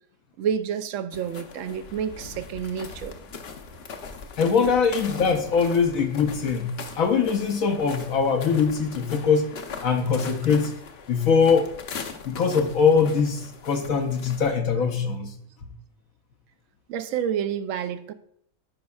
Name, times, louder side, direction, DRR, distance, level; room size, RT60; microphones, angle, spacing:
voice 1, 0.4-3.2 16.9-18.1, right 8 dB, 70° right, 0.9 m, -29 dB
sound 1, 1.1-14.6, left 5 dB, 55° left, 0.9 m, -40 dB
voice 2, 4.4-9.5 9.8-10.7 11.1-11.7 12.2-15.3, left 5 dB, 70° left, 1.2 m, -22 dB
13.0 x 5.2 x 2.3 m
omnidirectional pair, 1.5 m